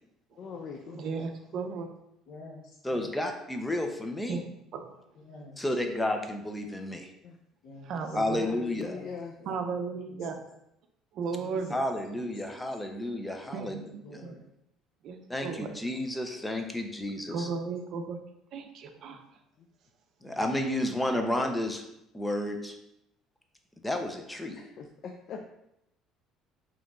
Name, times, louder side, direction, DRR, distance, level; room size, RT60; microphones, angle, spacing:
voice 1, 0.4-1.2 1.5-1.7 7.2-7.4 8.3-9.3 19.1-19.2 19.6-19.7 24.5-25.5, left 5 dB, 50° left, 3 dB, 0.4 m, -42 dB
voice 2, 0.9-1.9 4.3-4.4 4.7-5.0 7.8-8.4 9.5-10.4 11.1-11.8 13.5-14.4 15.0-15.7 17.3-18.2 18.5-19.2, right 5 dB, 55° right, 5 dB, 0.6 m, -35 dB
voice 3, 2.3-3.2 5.1-5.6 7.6-8.3 8.8-9.1 9.4-9.6 10.1-10.2 11.3-11.8 12.1-12.6 13.4-14.4 15.6-16.0 17.4-17.7 20.2-20.5, left 2 dB, 70° left, -3 dB, 1.1 m, -49 dB
voice 4, 2.8-4.4 5.6-7.1 8.1-8.9 11.7-13.8 14.1-14.2 15.3-17.5 20.2-21.8 22.1-22.8 23.8-24.6, left 1 dB, 10° left, 4 dB, 0.6 m, -31 dB
4.8 x 3.0 x 3.6 m, 0.82 s
cardioid pair, 120°, 0 cm